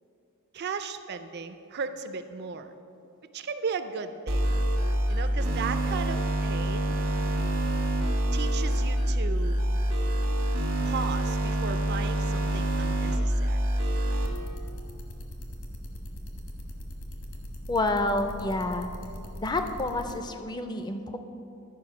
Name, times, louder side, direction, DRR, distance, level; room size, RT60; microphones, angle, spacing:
voice 1, 0.5-2.7 3.3-4.4 5.1-6.9 8.3-9.6 10.8-13.6, right 5 dB, 50° right, 10 dB, 0.4 m, -36 dB
sound 1, 4.3-14.3, right 1 dB, 80° right, 1.3 m, -26 dB
sound 2, 14.2-20.1, equal, 65° left, 1.3 m, -40 dB
voice 2, 17.7-18.9 19.4-21.2, left 2 dB, 20° left, 7 dB, 0.4 m, -29 dB
11.0 x 4.9 x 5.7 m, 2.8 s
head